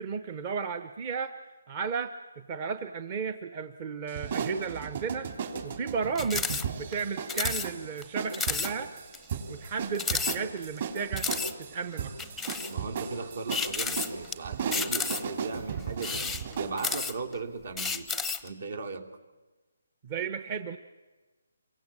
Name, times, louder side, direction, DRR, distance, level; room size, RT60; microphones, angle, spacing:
voice 1, 0.0-1.4 1.7-5.3 5.6-6.5 6.8-8.9 9.5-11.3 11.6-12.1 20.0-20.8, right 5 dB, 25° right, 10 dB, 0.8 m, -34 dB
sound 1, 4.1-16.8, right 6 dB, 40° right, 3.9 m, -36 dB
sound 2, 6.1-6.6 6.9-7.0 7.3-7.7 8.0-8.1 8.3-8.7 9.1-9.2 9.9-10.8 11.2-11.5 12.2-12.7 13.5-14.3 14.7-15.4 15.9-17.3 17.8-18.5, left 5 dB, ahead, 0.7 m, -31 dB
voice 2, 12.7-16.2 16.6-18.1 18.4-19.2, right 4 dB, 65° right, 5 dB, 3.0 m, -37 dB
27.5 x 23.5 x 7.5 m, 1.2 s
hypercardioid pair, 170°, 0 cm